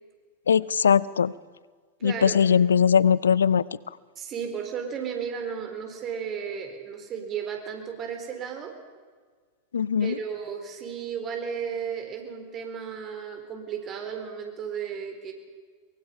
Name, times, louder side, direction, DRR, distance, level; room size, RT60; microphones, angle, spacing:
voice 1, 0.5-1.3 2.0-3.6 9.7-10.2, left 7 dB, 70° left, 22 dB, 0.5 m, -20 dB
voice 2, 2.0-2.4 4.2-8.7 10.0-15.3, right 7 dB, 30° right, 4 dB, 4.2 m, -34 dB
23.5 x 23.0 x 5.7 m, 1.5 s
figure-of-eight pair, 90°, 0 cm